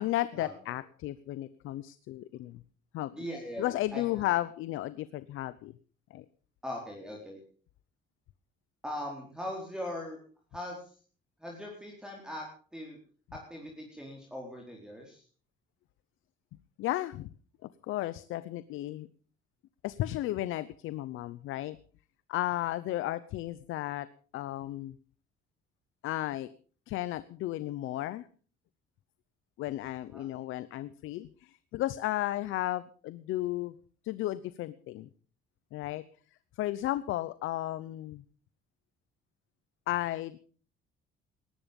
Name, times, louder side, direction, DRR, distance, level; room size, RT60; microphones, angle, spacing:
voice 1, 0.0-2.6 2.9-3.2 3.6-5.7 6.1-6.2 16.8-17.3 17.6-19.1 19.8-21.8 22.3-24.1 24.3-25.0 26.0-26.5 26.9-28.3 29.6-33.7 34.0-35.1 35.7-36.0 36.6-38.2 39.9-40.4, left 15 dB, 80° left, 16 dB, 0.8 m, -34 dB
voice 2, 3.2-4.3 6.6-7.4 8.8-10.2 10.5-11.0 11.4-13.0 13.3-15.3 30.1-30.3, left 1 dB, 5° right, -1 dB, 4.3 m, -40 dB
19.0 x 14.5 x 5.3 m, 0.42 s
cardioid pair, 115°, 21 cm